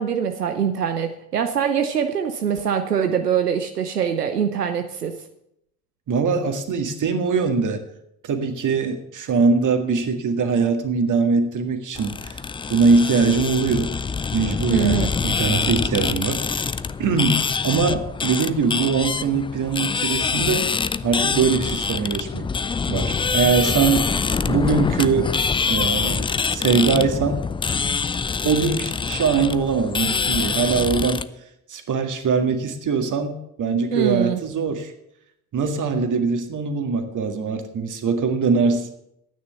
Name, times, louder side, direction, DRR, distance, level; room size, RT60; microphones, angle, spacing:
voice 1, 0.0-5.2 14.7-15.1 33.9-34.4, right 8 dB, 85° right, 7 dB, 0.7 m, -23 dB
voice 2, 6.1-7.8 8.2-12.4 12.7-13.9 14.3-16.4 17.0-20.7 21.0-22.5 22.9-24.1 24.5-25.3 25.7-27.4 28.4-31.2 31.7-34.9 35.5-38.9, right 5 dB, 40° right, 7 dB, 2.0 m, -22 dB
sound 1, 11.9-31.2, left 5 dB, 10° left, 0.4 m, -25 dB
13.0 x 9.5 x 6.8 m, 0.78 s
figure-of-eight pair, 50°, 46 cm